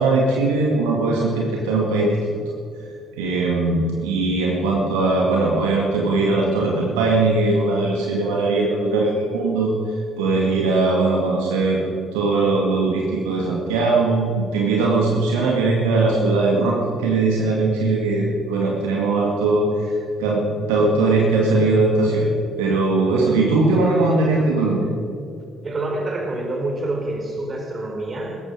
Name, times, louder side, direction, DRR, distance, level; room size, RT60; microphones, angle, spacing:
voice 1, 0.0-2.2 3.2-9.7 10.2-11.8 12.1-19.9 20.2-20.4 20.7-22.3 22.6-24.9, right 3 dB, 70° right, -2 dB, 2.1 m, -20 dB
voice 2, 25.6-28.4, right 2 dB, 40° right, 3 dB, 3.9 m, -27 dB
18.5 x 14.0 x 5.1 m, 2.6 s
figure-of-eight pair, 45°, 0 cm